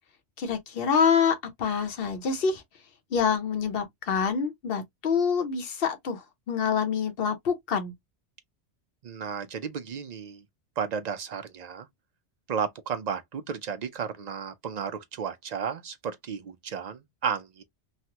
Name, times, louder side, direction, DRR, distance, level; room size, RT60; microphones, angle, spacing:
voice 1, 0.4-2.6 3.1-7.9, left 6 dB, 55° left, 1.0 m, -26 dB
voice 2, 9.0-10.4 10.8-11.9 12.5-17.6, right 6 dB, 55° right, 0.4 m, -33 dB
3.2 x 2.1 x 2.8 m
omnidirectional pair, 1.2 m